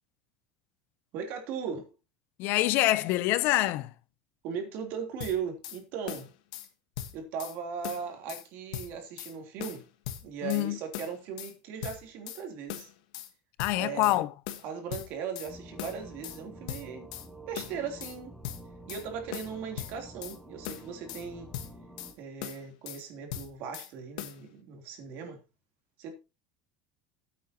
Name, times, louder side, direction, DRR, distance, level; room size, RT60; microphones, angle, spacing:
voice 1, 1.1-1.9 4.4-6.3 7.1-9.8 10.2-12.9 13.8-14.2 14.6-17.1 17.5-18.4 18.9-21.5 22.2-25.4 26.0-26.2, right 6 dB, 60° right, 3.3 m, -38 dB
voice 2, 2.4-3.9 10.4-10.8 13.6-14.3, left 16 dB, 60° left, 0.7 m, -26 dB
sound 1, 5.2-5.8 6.1-6.7 7.0-7.6 7.8-8.5 8.7-9.3 9.6-10.7 10.9-11.5 11.8-12.4 12.7-13.3 13.6-14.2 14.5-15.5 15.8-16.4 16.7-17.3 17.6-18.2 18.4-19.1 19.3-20.4 20.6-21.3 21.5-22.1 22.4-23.0 23.3-23.9 24.2-24.4, left 12 dB, 85° left, 1.4 m, -40 dB
sound 2, 15.5-22.1, right 1 dB, 5° right, 3.3 m, -49 dB
15.5 x 8.5 x 3.0 m
supercardioid pair, 130°, 4 cm